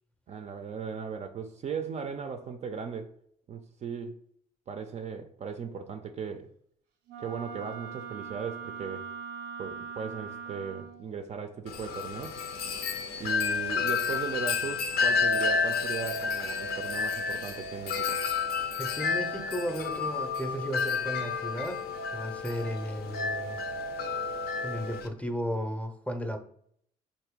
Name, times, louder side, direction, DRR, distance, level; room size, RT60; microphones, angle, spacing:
voice 1, 0.3-3.1 3.5-4.2 4.7-6.5 7.2-9.0 9.6-12.3 13.2-18.2, right 6 dB, 35° right, 0.4 m, -37 dB
Wind instrument woodwind instrument, 7.1-11.1, right 6 dB, 80° right, 0.6 m, -41 dB
Wind chime, 11.7-25.1, left 5 dB, 50° left, 0.5 m, -31 dB
voice 2, 18.8-21.8 22.1-23.6 24.6-26.4, equal, 5° left, 0.6 m, -34 dB
3.0 x 2.7 x 3.6 m
figure-of-eight pair, 50°, 20 cm